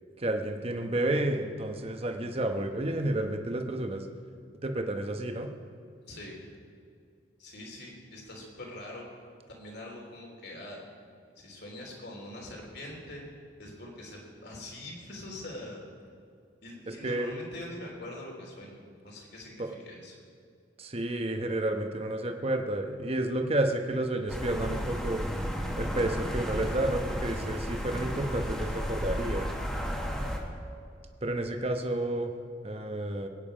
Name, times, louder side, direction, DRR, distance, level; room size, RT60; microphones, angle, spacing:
voice 1, 0.2-4.1 4.6-5.5 16.9-17.3 19.6-19.7 20.8-25.2 25.8-29.5 31.2-32.3 32.6-33.3, right 1 dB, 30° right, 5 dB, 1.0 m, -31 dB
voice 2, 7.4-10.8 11.4-13.3 13.6-15.9 16.6-20.2, left 1 dB, 60° left, -1 dB, 3.6 m, -43 dB
sound 1, 24.3-30.4, equal, 5° left, 1.4 m, -33 dB
22.0 x 9.4 x 5.0 m, 2.3 s
head